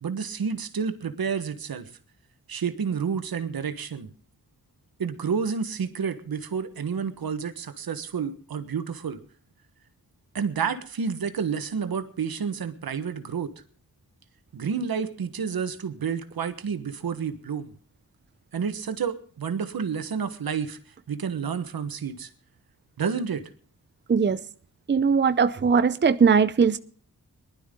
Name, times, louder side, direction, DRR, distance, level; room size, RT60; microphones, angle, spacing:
voice 1, 0.0-1.9 2.5-4.1 5.0-9.2 10.3-13.5 14.5-17.7 18.5-20.8 21.1-22.3 23.0-23.5, right 6 dB, 80° right, 1.4 m, -30 dB
voice 2, 24.1-24.4 24.9-26.8, right 6 dB, 30° right, 0.6 m, -20 dB
19.5 x 12.0 x 3.8 m
wide cardioid pair, 75°, 35 cm